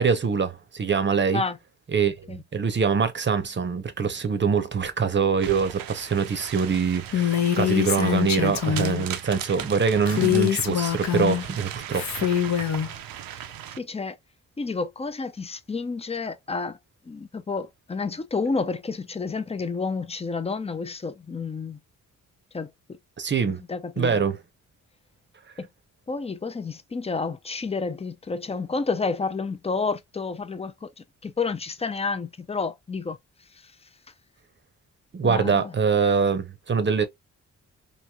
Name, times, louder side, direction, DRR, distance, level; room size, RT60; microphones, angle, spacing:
voice 1, 0.0-1.4 1.9-12.3 23.2-23.6 24.0-24.4 35.1-37.0, right 6 dB, 35° right, 0.7 m, -24 dB
sound 1, 5.4-13.8, right 10 dB, 85° right, 0.5 m, -38 dB
Female speech woman speaking, 7.1-9.0 10.1-11.5 11.9-12.9, left 10 dB, 55° left, 0.7 m, -24 dB
voice 2, 13.8-14.2 14.6-16.8 17.0-21.8 22.5-22.7 23.4-24.2 25.6-25.7 26.1-33.2 33.6-33.7 35.2-35.7, left 4 dB, 20° left, 0.5 m, -30 dB
3.1 x 2.6 x 2.3 m
cardioid pair, 70°, 34 cm